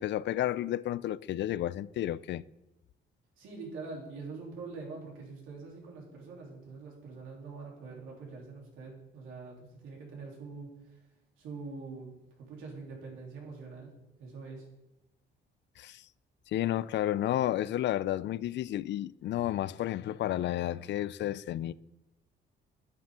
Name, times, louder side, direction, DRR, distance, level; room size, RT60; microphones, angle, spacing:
voice 1, 0.0-2.4 15.8-16.0 16.5-21.7, left 13 dB, 65° left, 0.4 m, -31 dB
voice 2, 3.4-11.0 11.4-13.9 14.2-14.7, right 4 dB, 90° right, 3.3 m, -44 dB
9.6 x 9.4 x 3.7 m
cardioid pair, 90°, 20 cm